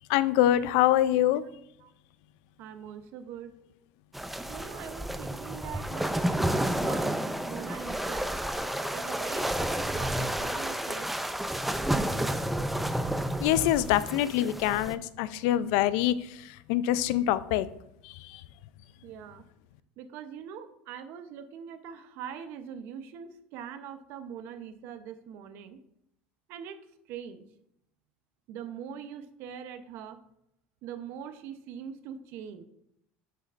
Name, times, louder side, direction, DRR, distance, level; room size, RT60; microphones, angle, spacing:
voice 1, 0.1-1.4 13.4-16.1 16.7-17.7, left 13 dB, 75° left, 16 dB, 0.4 m, -24 dB
voice 2, 2.6-3.5 4.5-8.3 8.8-11.1 19.0-19.4 20.0-25.8 26.5-26.8 27.1-27.4 28.5-30.2 30.8-32.6, right 8 dB, 60° right, 10 dB, 0.7 m, -42 dB
sound 1, 4.1-14.9, right 1 dB, 5° right, 0.4 m, -31 dB
7.6 x 6.7 x 2.5 m, 0.77 s
supercardioid pair, 130°, 4 cm